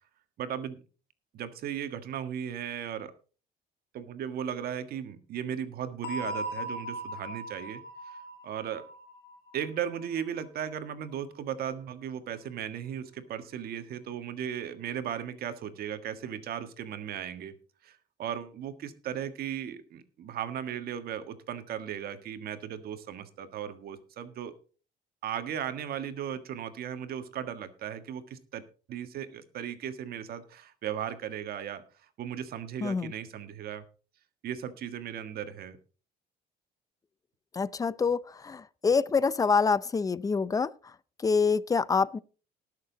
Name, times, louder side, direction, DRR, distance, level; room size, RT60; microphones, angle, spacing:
voice 1, 0.4-0.8 1.3-3.1 3.9-7.8 8.4-8.8 9.5-17.5 17.8-24.5 25.2-28.6 28.9-31.8 32.2-33.8 34.4-35.8, right 9 dB, 65° right, 1.6 m, -36 dB
sound 1, 6.0-10.7, equal, 85° left, 3.6 m, -39 dB
voice 2, 32.8-33.1 37.5-40.9 41.2-42.2, left 5 dB, 20° left, 0.5 m, -26 dB
19.0 x 6.8 x 4.0 m
cardioid pair, 110°, 17 cm